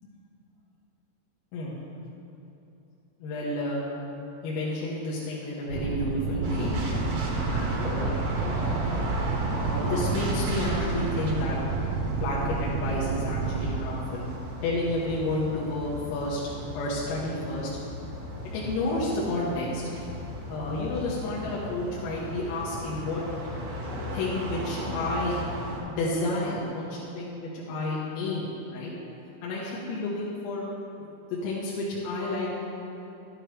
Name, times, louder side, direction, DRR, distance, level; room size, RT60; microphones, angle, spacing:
voice 1, 3.2-3.8 4.4-6.7 7.5-8.2 9.6-11.6 12.2-14.2 14.6-16.4 16.7-17.7 18.5-19.9 20.5-23.2 24.1-25.5 25.8-26.9 27.1-28.9 29.4-30.6 31.3-32.5, left 2 dB, 90° left, -7 dB, 4.0 m, -30 dB
sound 1, 5.7-13.8, right 5 dB, 80° right, 2.9 m, -30 dB
sound 2, 6.4-25.8, left 1 dB, 60° right, 2.4 m, -35 dB
12.5 x 9.8 x 3.1 m, 3.0 s
omnidirectional pair, 5.9 m